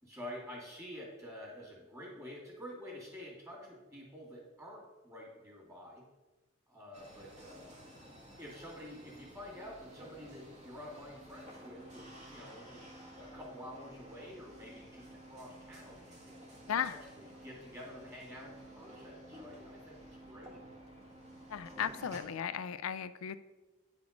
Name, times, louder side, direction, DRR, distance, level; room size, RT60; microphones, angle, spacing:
voice 1, 0.0-6.0 6.7-7.8 8.4-16.4 16.9-20.6, left 1 dB, 15° right, -3 dB, 2.5 m, -49 dB
sound 1, 6.9-22.2, right 1 dB, 35° right, 1.7 m, -53 dB
voice 2, 21.5-23.4, left 8 dB, 90° left, 13 dB, 0.4 m, -36 dB
9.3 x 5.0 x 5.2 m, 1.1 s
head